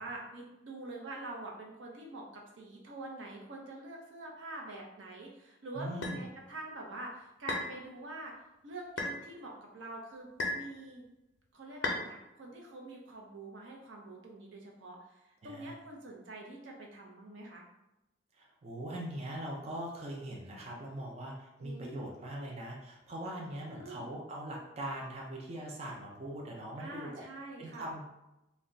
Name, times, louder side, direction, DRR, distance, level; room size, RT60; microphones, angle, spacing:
voice 1, 0.0-8.3 8.6-11.0 11.5-17.6 21.6-21.9 23.7-24.1 26.8-27.9, right 2 dB, 90° right, -1 dB, 0.7 m, -45 dB
voice 2, 5.8-6.2 15.4-15.7 18.3-27.2 27.6-28.1, right 1 dB, 35° right, -2 dB, 0.4 m, -41 dB
sound 1, 6.0-6.2 7.5-7.7 9.0-9.2 10.4-10.7 11.8-12.1, left 2 dB, 70° left, 0.5 m, -34 dB
2.3 x 2.1 x 3.7 m, 0.94 s
head